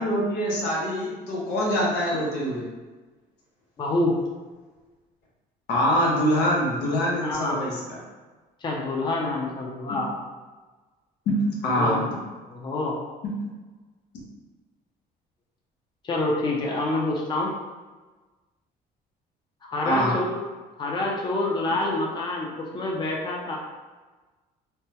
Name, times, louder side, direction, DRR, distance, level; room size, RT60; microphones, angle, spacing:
voice 1, 0.0-2.7 5.7-7.8 11.3-12.0 19.8-20.2, equal, 85° left, -3 dB, 0.9 m, -24 dB
voice 2, 3.8-4.2 7.2-7.6 8.6-10.1 11.8-12.0 12.5-13.0 16.0-17.5 19.6-20.4 20.8-23.6, left 2 dB, 25° left, -2 dB, 0.5 m, -27 dB
3.3 x 2.1 x 2.8 m, 1.3 s
cardioid pair, 110°, 17 cm